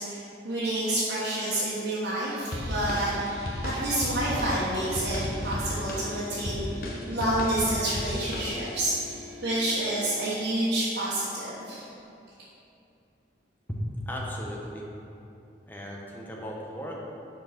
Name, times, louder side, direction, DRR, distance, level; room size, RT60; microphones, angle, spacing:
voice 1, 0.0-3.4 3.6-9.1 9.4-11.8, right 1 dB, 85° right, -9 dB, 1.3 m, -29 dB
sound 1, 2.5-8.9, left 1 dB, 55° left, 0.9 m, -34 dB
sound 2, 2.5-10.2, left 3 dB, 65° right, 0.8 m, -44 dB
voice 2, 13.7-14.9 15.7-17.0, equal, 10° left, -3 dB, 0.9 m, -35 dB
6.2 x 4.5 x 5.8 m, 2.7 s
head